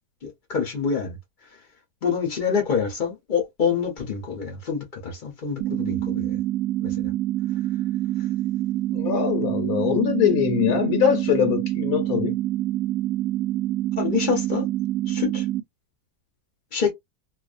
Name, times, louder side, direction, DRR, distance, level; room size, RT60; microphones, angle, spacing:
voice 1, 0.2-1.2 2.0-6.4 6.8-7.1 14.0-14.7 15.1-15.4 16.7-16.9, left 6 dB, 45° left, 0.6 m, -26 dB
sound 1, 5.6-15.6, right 14 dB, 70° right, 0.9 m, -26 dB
voice 2, 8.9-12.4, left 10 dB, 70° left, 1.1 m, -22 dB
2.5 x 2.3 x 2.4 m
omnidirectional pair, 1.8 m